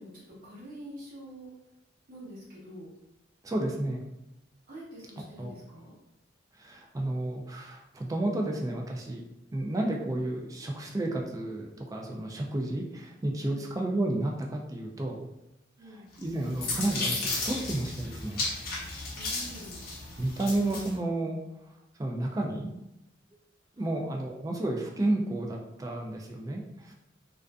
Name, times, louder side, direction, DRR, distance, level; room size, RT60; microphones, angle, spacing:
voice 1, 0.0-1.5 2.1-2.9 4.7-5.9 13.4-13.7 15.8-16.3 19.1-19.8 23.7-24.1, equal, 50° right, -7 dB, 0.8 m, -46 dB
voice 2, 3.4-4.0 5.4-5.5 6.6-9.2 9.5-15.3 15.9-18.5 20.2-21.4 22.0-22.7 23.8-26.9, right 1 dB, 20° right, 0 dB, 0.3 m, -31 dB
sound 1, 16.2-20.9, left 2 dB, 50° left, 0.6 m, -34 dB
2.4 x 2.4 x 2.2 m, 0.89 s
head